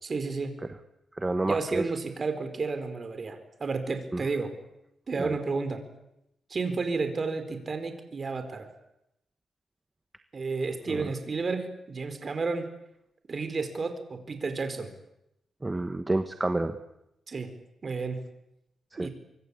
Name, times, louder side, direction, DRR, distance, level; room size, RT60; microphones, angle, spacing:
voice 1, 0.0-0.6 1.4-4.5 5.1-5.8 6.5-8.7 10.3-12.7 13.3-14.9 17.3-17.5 17.8-18.2 19.0-19.1, right 4 dB, 35° right, 8 dB, 4.5 m, -31 dB
voice 2, 1.2-1.8 4.1-4.2 5.2-5.4 10.9-11.1 15.6-16.8 19.0-19.1, right 2 dB, 15° right, 8 dB, 1.2 m, -29 dB
25.5 x 24.0 x 8.4 m, 0.84 s
cardioid pair, 125°, 0 cm